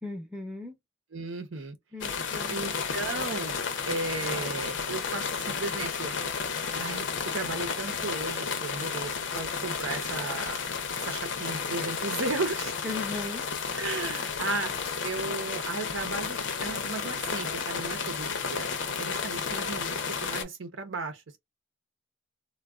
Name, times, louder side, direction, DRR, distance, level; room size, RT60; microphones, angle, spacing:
voice 1, 0.0-0.8 1.9-2.6 12.8-13.8, left 3 dB, 5° right, 0.6 m, -38 dB
voice 2, 1.1-1.7 2.5-3.6 3.9-6.1 6.7-7.1 7.3-10.6 11.0-12.7 13.8-14.7 15.0-18.7 19.0-21.4, right 3 dB, 85° right, 0.7 m, -35 dB
sound 1, 2.0-20.4, left 5 dB, 70° left, 0.6 m, -32 dB
3.4 x 2.2 x 2.3 m
head